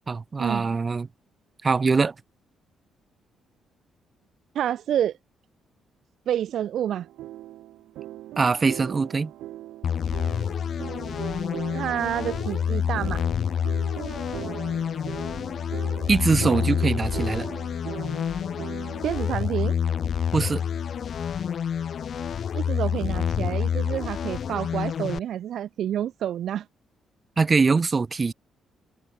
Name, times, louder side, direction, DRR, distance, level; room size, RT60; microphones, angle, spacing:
voice 1, 0.1-1.1 1.6-2.1 8.4-9.3 16.1-17.5 20.3-20.6 27.4-28.3, right 4 dB, 30° right, 1.7 m, -22 dB
voice 2, 4.5-5.2 6.3-7.1 11.7-13.2 19.0-19.8 22.5-26.7, right 10 dB, 70° right, 4.4 m, -28 dB
sound 1, 6.9-19.2, right 14 dB, 85° right, 4.9 m, -40 dB
sound 2, 9.8-25.2, left 8 dB, 55° left, 3.2 m, -28 dB
cardioid pair, 90°, 0 cm